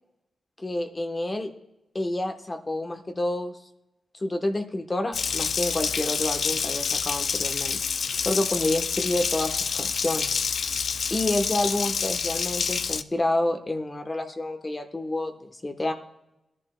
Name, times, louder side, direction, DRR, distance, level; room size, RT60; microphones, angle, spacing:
voice 1, 0.6-1.5 1.9-3.6 4.2-7.8 8.2-10.3 11.1-15.9, left 1 dB, 30° left, 5 dB, 1.0 m, -28 dB
Water tap faucet, 5.1-13.0, left 6 dB, 75° left, 0.4 m, -28 dB
17.5 x 11.0 x 2.2 m, 0.90 s
cardioid pair, 60°, 0 cm